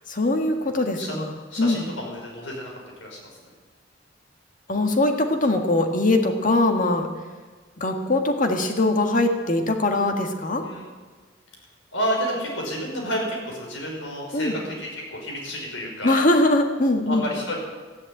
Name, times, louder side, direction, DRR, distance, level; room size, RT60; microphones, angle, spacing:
voice 1, 0.1-1.9 4.7-7.1 7.8-10.6 14.3-14.6 16.0-17.3, left 2 dB, 45° left, 4 dB, 1.7 m, -22 dB
voice 2, 1.5-2.7 3.0-3.4 10.6-10.8 11.9-16.2 17.1-17.6, equal, 85° left, -1 dB, 5.3 m, -30 dB
14.0 x 11.0 x 8.7 m, 1.4 s
head